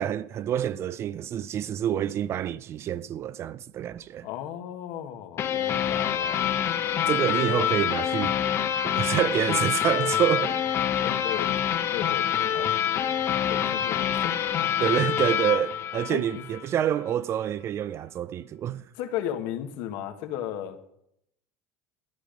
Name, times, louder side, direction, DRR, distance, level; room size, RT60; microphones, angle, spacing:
voice 1, 0.0-4.3 7.1-8.4 8.8-10.6 14.8-18.8, right 10 dB, 35° right, 0.4 m, -27 dB
voice 2, 4.2-6.4 11.0-11.6 11.9-12.7 13.5-14.4 16.1-16.4 18.9-20.8, left 11 dB, 65° left, 1.5 m, -35 dB
sound 1, 5.4-16.6, left 9 dB, 35° left, 0.8 m, -26 dB
13.0 x 10.0 x 5.1 m
supercardioid pair, 140°, 8 cm